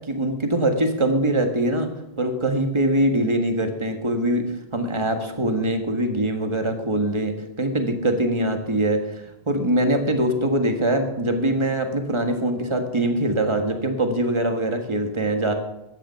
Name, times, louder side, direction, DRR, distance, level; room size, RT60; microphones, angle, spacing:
voice 1, 0.1-1.9 2.2-4.5 4.7-15.5, right 1 dB, 30° right, 5 dB, 1.6 m, -23 dB
14.0 x 9.6 x 5.8 m, 0.93 s
omnidirectional pair, 1.0 m